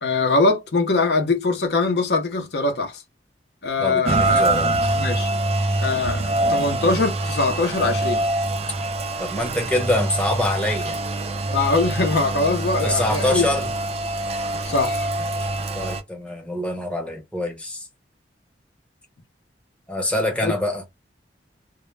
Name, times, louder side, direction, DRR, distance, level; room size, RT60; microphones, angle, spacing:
voice 1, 0.0-3.0 3.6-4.4 5.0-5.3 5.8-6.2 6.5-8.2 11.5-13.5 14.6-15.1 20.4-20.6, left 3 dB, 65° left, 0.6 m, -22 dB
voice 2, 3.8-4.8 9.2-11.0 12.8-13.7 15.7-17.8 19.9-20.9, left 1 dB, 5° left, 0.7 m, -25 dB
Rain, 4.0-16.0, right 2 dB, 35° right, 0.3 m, -24 dB
2.1 x 2.0 x 3.1 m
head